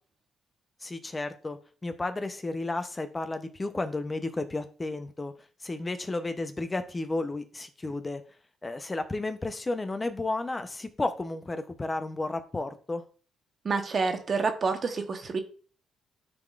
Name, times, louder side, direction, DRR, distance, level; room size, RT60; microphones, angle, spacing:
voice 1, 0.8-5.3 5.6-8.2 8.6-13.0, left 2 dB, 20° left, 8 dB, 0.6 m, -32 dB
voice 2, 13.6-15.4, right 4 dB, 40° right, 6 dB, 1.0 m, -28 dB
10.5 x 3.8 x 2.4 m, 0.39 s
cardioid pair, 90°, 0 cm